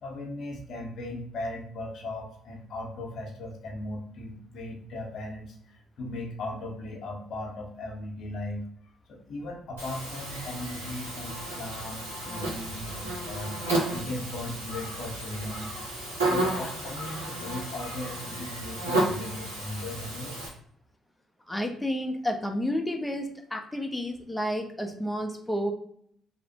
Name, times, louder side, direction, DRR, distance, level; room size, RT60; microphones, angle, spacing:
voice 1, 0.0-15.7 16.2-20.4, left 1 dB, 60° left, 0 dB, 0.7 m, -38 dB
Buzz, 9.8-20.5, right 1 dB, 85° right, 0.7 m, -32 dB
voice 2, 21.5-25.7, equal, 10° left, 3 dB, 0.5 m, -30 dB
2.8 x 2.0 x 2.7 m, 0.65 s
hypercardioid pair, 45°, 0 cm